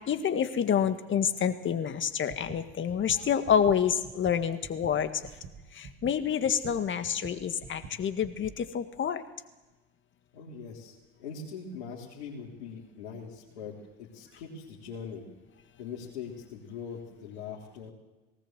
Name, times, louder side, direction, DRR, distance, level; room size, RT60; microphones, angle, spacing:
voice 1, 0.0-5.1 5.8-9.2, left 8 dB, 35° left, 9 dB, 1.8 m, -28 dB
sound 1, 2.1-8.6, right 5 dB, 40° right, 2.7 m, -47 dB
voice 2, 10.3-15.3 15.8-17.9, left 6 dB, 75° left, -5 dB, 3.6 m, -42 dB
19.0 x 18.5 x 7.6 m, 1.1 s
hypercardioid pair, 80°, 33 cm